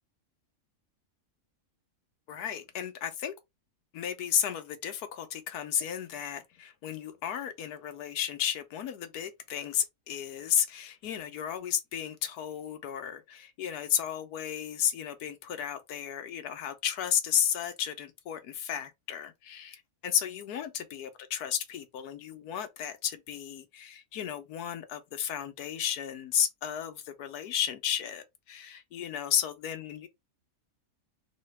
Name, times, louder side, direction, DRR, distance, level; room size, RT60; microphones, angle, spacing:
voice 1, 2.3-3.3 3.9-30.1, left 9 dB, 80° left, 1.2 m, -33 dB
3.2 x 2.8 x 3.2 m
omnidirectional pair, 1.6 m